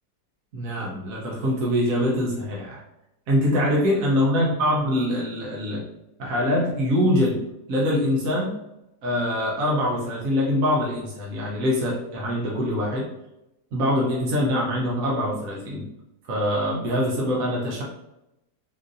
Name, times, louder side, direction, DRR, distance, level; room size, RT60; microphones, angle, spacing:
voice 1, 0.5-2.8 3.3-5.8 6.2-7.4 7.7-8.5 9.0-13.1 13.7-15.9 16.3-17.8, equal, 60° right, -4 dB, 1.0 m, -24 dB
3.8 x 2.5 x 2.5 m, 0.89 s
omnidirectional pair, 1.8 m